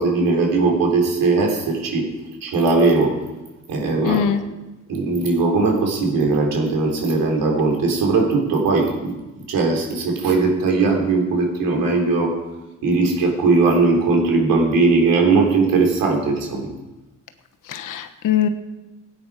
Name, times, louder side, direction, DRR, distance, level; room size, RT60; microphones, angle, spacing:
voice 1, 0.0-2.1 2.4-3.2 3.7-4.2 4.9-9.1 9.5-12.4 12.8-16.7, right 3 dB, 80° right, 1 dB, 3.7 m, -19 dB
voice 2, 4.0-4.4 17.7-18.5, left 9 dB, 70° left, 8 dB, 1.2 m, -21 dB
17.0 x 9.1 x 5.0 m, 1.1 s
cardioid pair, 120°, 33 cm